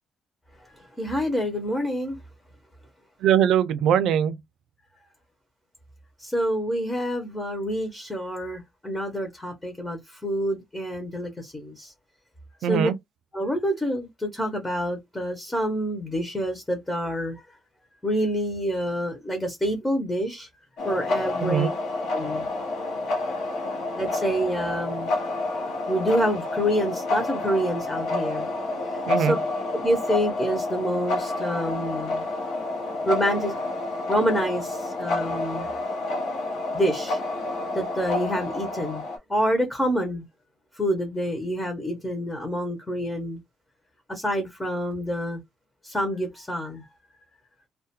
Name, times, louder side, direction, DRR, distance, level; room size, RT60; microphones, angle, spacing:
voice 1, 0.8-2.2 6.2-11.9 12.7-12.9 13.3-17.4 18.0-20.5 20.8-21.7 22.1-22.5 24.0-25.1 25.9-28.5 28.9-29.4 29.7-32.2 33.0-33.6 34.1-35.7 36.7-37.2 37.7-39.0 39.3-40.2 40.7-43.4 44.1-45.4 45.8-46.8, equal, 10° left, 0.6 m, -27 dB
voice 2, 3.2-4.4 12.6-12.9 21.4-21.7 29.1-29.4, right 9 dB, 75° right, 0.4 m, -21 dB
sound 1, 20.8-39.2, left 2 dB, 85° left, 0.7 m, -29 dB
2.3 x 2.1 x 2.8 m
cardioid pair, 165°, 0 cm